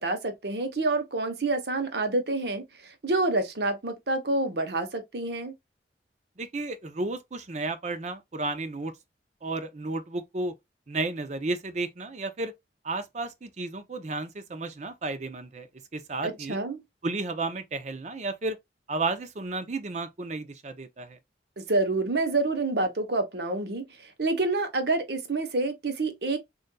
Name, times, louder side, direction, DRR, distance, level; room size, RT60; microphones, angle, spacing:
voice 1, 0.0-5.5 16.2-16.8 21.6-26.4, right 2 dB, 65° right, 0.9 m, -28 dB
voice 2, 6.4-8.9 9.4-10.5 10.9-12.5 12.8-15.7 15.9-16.6 17.0-18.6 18.9-21.2, right 3 dB, 40° right, 0.6 m, -32 dB
6.5 x 2.5 x 2.3 m
head